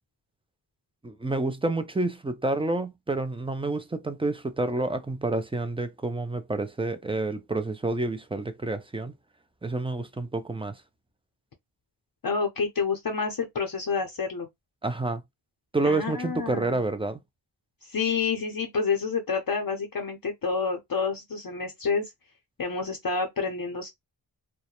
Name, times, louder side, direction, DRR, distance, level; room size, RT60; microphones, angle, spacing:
voice 1, 1.0-9.1 9.6-10.8 14.8-15.2 15.7-17.2, right 2 dB, 15° right, 0.3 m, -29 dB
voice 2, 12.2-14.5 15.8-16.8 17.8-22.1 22.6-23.9, left 5 dB, 50° left, 0.6 m, -28 dB
2.3 x 2.1 x 2.8 m
wide cardioid pair, 80°, 47 cm